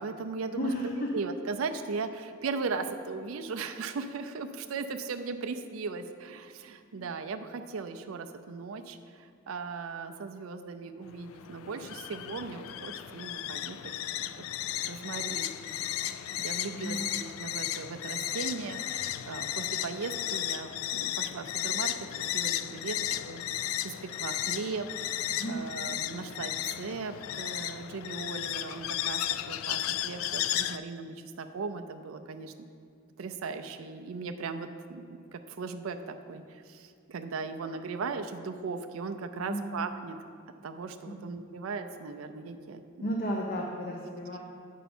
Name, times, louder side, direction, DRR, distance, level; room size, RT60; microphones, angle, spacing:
voice 1, 0.0-13.9 14.4-14.5 14.8-16.1 16.4-32.5 33.2-40.2 40.6-43.2, right 4 dB, 85° right, 7 dB, 0.5 m, -38 dB
voice 2, 0.6-1.1 6.9-7.1 16.7-17.1 25.3-25.8 39.4-39.8 41.1-41.4 43.0-44.4, equal, 45° left, -1 dB, 0.7 m, -34 dB
sound 1, 11.1-30.8, left 12 dB, 85° left, 0.3 m, -34 dB
9.1 x 5.6 x 4.3 m, 2.4 s
head